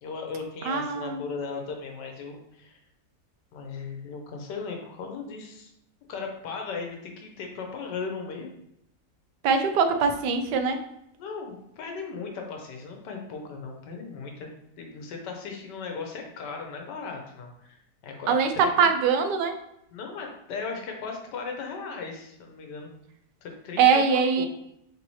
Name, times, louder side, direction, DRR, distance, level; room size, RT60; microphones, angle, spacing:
voice 1, 0.0-2.8 3.5-5.7 6.1-8.5 11.2-14.5 14.8-18.7 19.9-22.9 23.4-24.5, left 4 dB, 85° left, 2 dB, 1.4 m, -37 dB
voice 2, 0.7-1.2 9.4-10.8 18.3-19.6 23.8-24.5, right 6 dB, 85° right, 7 dB, 1.2 m, -22 dB
3.7 x 3.0 x 4.1 m, 0.77 s
omnidirectional pair, 1.8 m